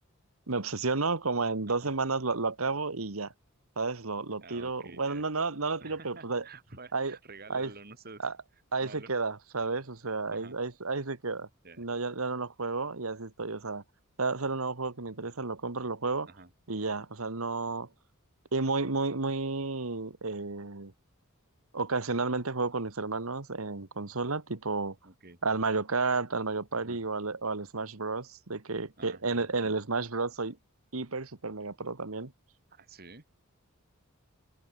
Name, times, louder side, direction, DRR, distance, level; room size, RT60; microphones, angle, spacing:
voice 1, 0.5-3.3 3.8-6.4 6.9-7.2 7.5-7.7 8.2-8.3 8.7-11.5 11.8-13.8 14.2-16.3 16.7-17.9 18.5-20.9 21.7-24.9 25.4-30.6 30.9-32.3, right 3 dB, 75° right, 1.7 m, -32 dB
voice 2, 4.4-5.2 5.8-8.3 8.8-9.1 10.3-10.6 11.6-11.9 16.2-16.5 25.0-25.4 26.8-27.0 29.0-29.5 32.7-33.2, right 3 dB, 45° right, 3.6 m, -50 dB
head